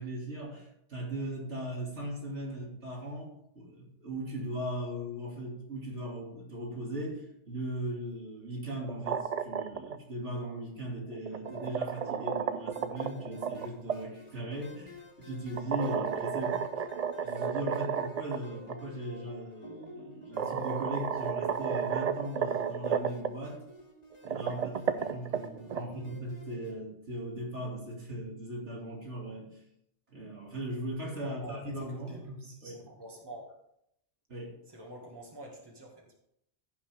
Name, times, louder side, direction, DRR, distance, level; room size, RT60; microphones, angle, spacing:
voice 1, 0.0-16.6 17.1-23.6 24.3-29.6 30.1-32.8 34.3-34.6, right 1 dB, 80° right, -2 dB, 2.9 m, -38 dB
sound 1, 8.8-10.0 11.1-14.0 15.6-18.4 18.7-18.8 19.8-19.9 20.4-23.3 24.1-25.8, right 7 dB, 50° right, 0.4 m, -32 dB
sound 2, 11.4-26.7, left 1 dB, 35° left, 2.5 m, -52 dB
voice 2, 25.7-26.0 31.2-31.6 31.9-33.5 34.7-36.2, right 1 dB, 20° right, -1 dB, 2.0 m, -47 dB
15.0 x 5.8 x 3.5 m, 0.76 s
omnidirectional pair, 1.2 m